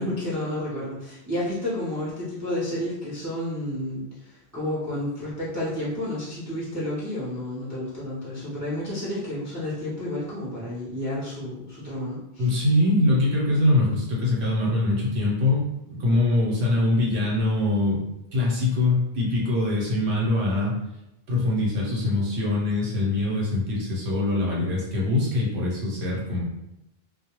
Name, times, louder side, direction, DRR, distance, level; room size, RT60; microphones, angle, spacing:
voice 1, 0.0-12.6, left 1 dB, 20° right, -9 dB, 0.6 m, -31 dB
voice 2, 12.4-18.0 18.3-20.8 21.3-26.4, left 2 dB, 80° right, -4 dB, 1.1 m, -23 dB
2.3 x 2.2 x 2.9 m, 0.86 s
omnidirectional pair, 1.1 m